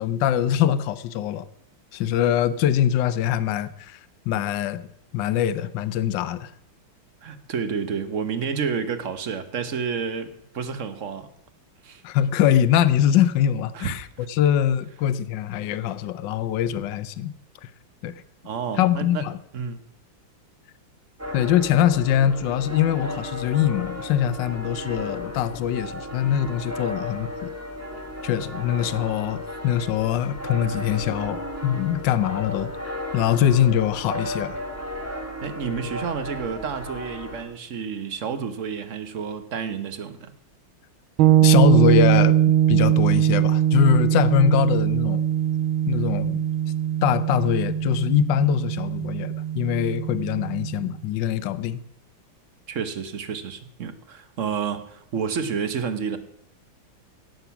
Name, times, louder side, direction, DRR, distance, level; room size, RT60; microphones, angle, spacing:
voice 1, 0.0-1.5 1.9-4.0 4.3-4.8 5.1-6.5 12.0-17.3 18.0-18.1 18.8-19.4 21.3-27.5 28.2-34.6 41.4-42.4 42.7-45.3 45.9-46.4 47.0-51.8, left 10 dB, 70° left, 1.4 m, -23 dB
voice 2, 7.2-11.3 11.8-12.0 13.7-13.9 14.2-14.3 18.4-19.2 19.5-19.8 35.4-40.3 52.7-56.2, right 6 dB, 45° right, 1.2 m, -30 dB
sound 1, 21.2-37.4, left 1 dB, 10° right, 1.7 m, -34 dB
sound 2, 41.2-50.9, right 11 dB, 85° right, 1.5 m, -21 dB
17.0 x 7.9 x 5.8 m
omnidirectional pair, 2.2 m